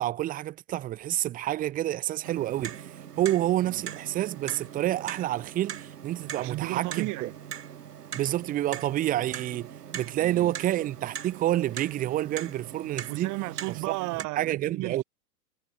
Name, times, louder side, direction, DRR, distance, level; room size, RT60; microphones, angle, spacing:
voice 1, 0.0-7.3 8.1-13.3 13.7-13.8 14.4-15.0, right 13 dB, 20° right, 0.7 m, -28 dB
Clock, 2.2-14.2, right 9 dB, 90° right, 4.8 m, -41 dB
voice 2, 3.6-4.2 6.4-7.3 10.2-10.5 13.1-15.0, right 24 dB, 40° right, 5.3 m, -34 dB
hypercardioid pair, 135°, 46 cm